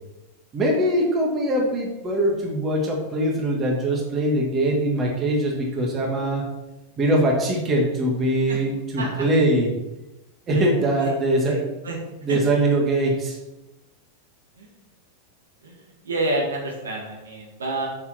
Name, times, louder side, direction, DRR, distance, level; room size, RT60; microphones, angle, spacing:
voice 1, 0.5-6.5 7.0-9.7 10.5-11.7 12.2-13.4, right 1 dB, 25° right, 0 dB, 2.1 m, -22 dB
voice 2, 11.4-12.0 12.3-12.4 14.6-14.7 15.6-17.9, right 2 dB, 70° right, -1 dB, 2.0 m, -29 dB
6.8 x 6.7 x 4.4 m, 0.98 s
figure-of-eight pair, 90°, 0 cm